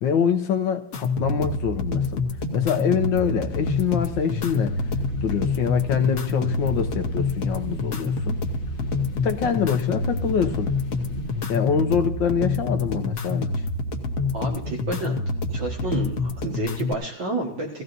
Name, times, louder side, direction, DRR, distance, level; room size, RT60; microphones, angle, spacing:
voice 1, 0.0-2.2 2.5-4.8 5.2-8.4 9.2-10.7 11.5-13.6, left 7 dB, 75° left, 1.5 m, -25 dB
sound 1, 0.9-16.9, left 3 dB, 50° left, 1.2 m, -27 dB
sound 2, 3.5-11.4, left 4 dB, 90° left, 2.0 m, -37 dB
voice 2, 14.3-15.2 15.5-17.8, right 2 dB, 65° right, 2.2 m, -30 dB
16.5 x 15.0 x 2.6 m
omnidirectional pair, 2.1 m